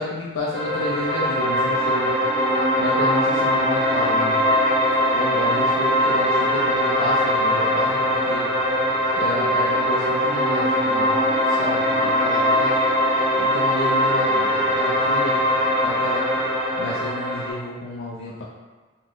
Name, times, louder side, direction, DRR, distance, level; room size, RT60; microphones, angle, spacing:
voice 1, 0.0-2.2 2.8-4.4 5.1-8.5 9.1-11.2 11.4-12.7 13.4-15.4 15.8-16.3 16.8-18.4, left 2 dB, 85° left, -5 dB, 0.4 m, -31 dB
sound 1, 0.5-17.5, equal, 50° right, 0.7 m, -21 dB
2.5 x 2.3 x 3.3 m, 1.3 s
head